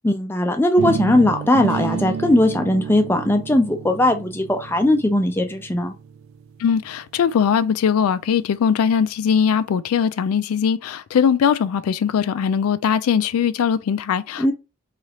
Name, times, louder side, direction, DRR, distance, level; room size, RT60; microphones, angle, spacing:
voice 1, 0.0-5.9 14.4-14.5, left 1 dB, 10° left, 0.4 m, -19 dB
sound 1, 0.8-6.7, right 6 dB, 70° right, 0.3 m, -30 dB
voice 2, 6.6-14.5, left 7 dB, 90° left, 0.3 m, -20 dB
3.0 x 2.4 x 2.7 m
head